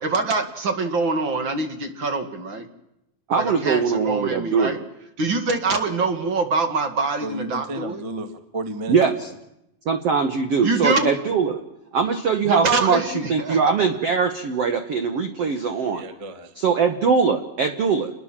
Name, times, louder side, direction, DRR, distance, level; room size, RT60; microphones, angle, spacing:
voice 1, 0.0-2.7 3.4-4.8 5.2-8.0 10.6-11.1 12.4-13.6, right 3 dB, 45° right, 7 dB, 1.7 m, -24 dB
voice 2, 3.3-4.8 8.9-9.3 9.8-11.6 11.9-16.0 16.5-18.1, right 5 dB, 65° right, 7 dB, 1.6 m, -21 dB
voice 3, 7.2-9.3 15.9-16.5, right 2 dB, 25° right, 7 dB, 0.7 m, -33 dB
29.0 x 21.0 x 7.4 m, 0.85 s
omnidirectional pair, 4.6 m